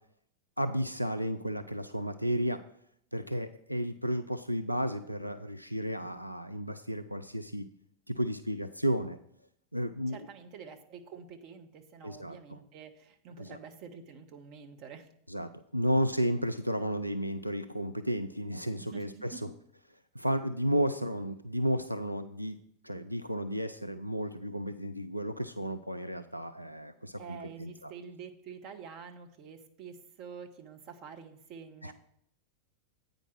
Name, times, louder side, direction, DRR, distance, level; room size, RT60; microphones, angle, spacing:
voice 1, 0.6-2.6 3.1-7.7 8.1-9.2 9.7-10.3 12.0-12.6 13.4-13.6 15.3-19.4 20.1-22.6 22.8-27.9 31.8-31.9, equal, 90° right, 9 dB, 0.3 m, -33 dB
voice 2, 10.1-15.1 18.8-19.4 27.2-31.9, right 6 dB, 40° right, 5 dB, 1.0 m, -47 dB
8.9 x 5.2 x 6.1 m, 0.72 s
figure-of-eight pair, 90°, 0 cm